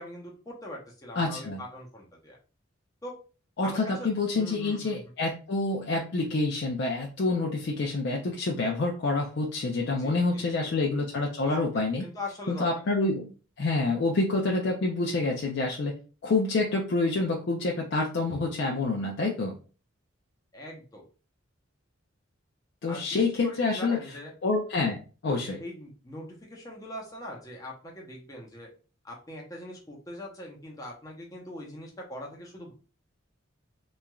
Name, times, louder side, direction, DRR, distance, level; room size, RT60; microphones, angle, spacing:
voice 1, 0.0-2.4 3.0-3.1 3.6-4.1 4.3-5.0 10.0-10.7 11.5-12.9 20.5-21.0 22.9-24.3 24.8-24.9 25.6-28.7 29.0-32.7, left 1 dB, 15° left, -2 dB, 0.7 m, -42 dB
voice 2, 1.2-1.6 3.6-12.0 12.5-13.3 13.6-15.9 16.2-19.6 22.8-24.0 24.4-25.6, left 3 dB, 55° left, 0 dB, 0.4 m, -27 dB
3.0 x 2.4 x 2.2 m, 0.36 s
head